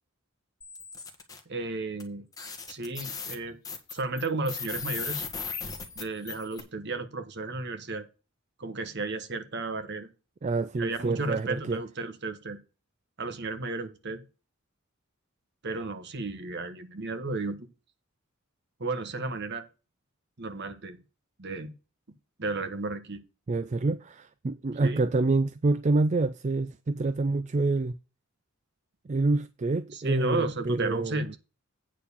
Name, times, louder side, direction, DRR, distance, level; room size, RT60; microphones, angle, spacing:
sound 1, 0.6-1.4 2.0-2.1 2.3-6.6, left 5 dB, 15° left, 1.6 m, -37 dB
voice 1, 1.5-2.2 2.7-3.6 3.9-5.3 6.0-8.1 8.6-10.1 10.8-12.6 13.2-14.2 15.6-17.6 18.8-19.6 20.4-21.0 21.4-21.7 22.4-23.2 24.8-25.0 29.9-31.4, right 2 dB, 55° right, 1.3 m, -33 dB
voice 2, 10.4-11.8 23.5-27.9 29.1-31.4, right 3 dB, 35° right, 0.4 m, -27 dB
8.9 x 4.6 x 6.9 m
head